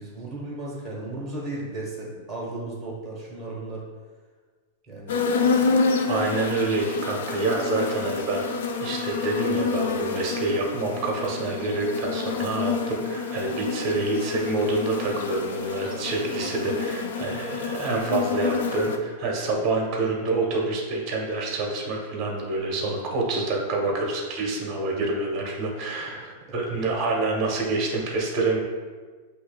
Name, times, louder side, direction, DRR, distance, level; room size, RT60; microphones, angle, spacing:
voice 1, 0.0-3.8 4.9-5.2 16.4-16.7, right 2 dB, 5° right, -5 dB, 1.1 m, -35 dB
sound 1, 5.1-19.0, left 4 dB, 75° left, 0.5 m, -28 dB
voice 2, 6.1-8.4 8.8-28.6, right 2 dB, 25° right, -1 dB, 0.9 m, -27 dB
8.1 x 2.8 x 2.2 m, 1.4 s
supercardioid pair, 175°, 0 cm